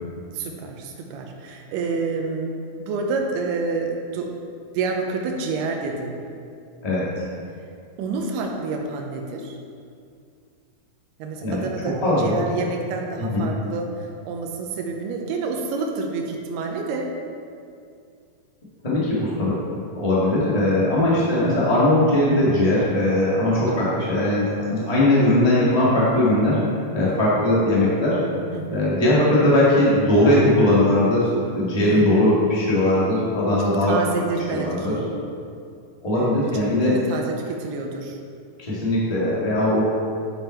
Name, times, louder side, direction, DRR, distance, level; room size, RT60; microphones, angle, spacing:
voice 1, 0.3-2.5 2.8-4.3 4.7-6.2 8.0-9.6 11.2-17.1 23.7-24.0 28.5-28.9 31.8-32.5 33.6-35.1 36.2-36.5 36.8-38.2, right 4 dB, 90° right, 1 dB, 2.8 m, -29 dB
voice 2, 6.8-7.3 11.4-11.7 12.0-12.4 13.2-13.5 18.8-19.5 19.9-26.6 26.9-28.2 28.7-34.0 34.5-34.9 36.0-36.9 38.6-39.8, left 1 dB, 55° left, -8 dB, 0.4 m, -19 dB
9.0 x 7.1 x 4.4 m, 2.3 s
omnidirectional pair, 4.5 m